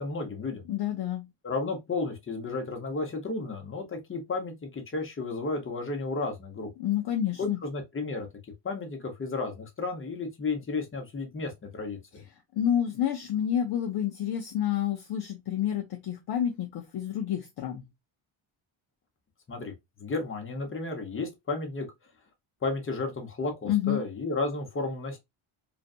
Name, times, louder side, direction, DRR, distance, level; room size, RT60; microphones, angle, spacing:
voice 1, 0.0-0.6 1.4-6.7 7.4-8.3 8.6-12.2 19.5-21.9 22.6-25.2, left 3 dB, 25° left, 0.8 m, -33 dB
voice 2, 0.7-1.3 6.8-7.6 12.5-17.8 23.6-24.0, left 10 dB, 55° left, 0.5 m, -29 dB
2.5 x 2.3 x 2.4 m
cardioid pair, 95°, 49 cm